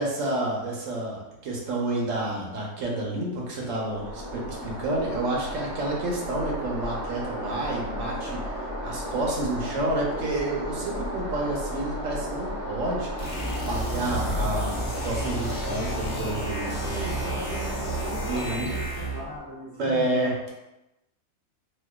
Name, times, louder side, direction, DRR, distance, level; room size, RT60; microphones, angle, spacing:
voice 1, 0.0-16.9 18.3-18.7 19.7-20.3, right 2 dB, 70° right, -2 dB, 1.1 m, -29 dB
sound 1, 3.9-19.4, equal, 20° right, 0.8 m, -34 dB
sound 2, 13.2-19.3, right 1 dB, 70° left, 1.1 m, -32 dB
voice 2, 16.6-20.3, equal, 45° left, -7 dB, 0.9 m, -39 dB
4.2 x 2.2 x 2.3 m, 0.96 s
omnidirectional pair, 1.4 m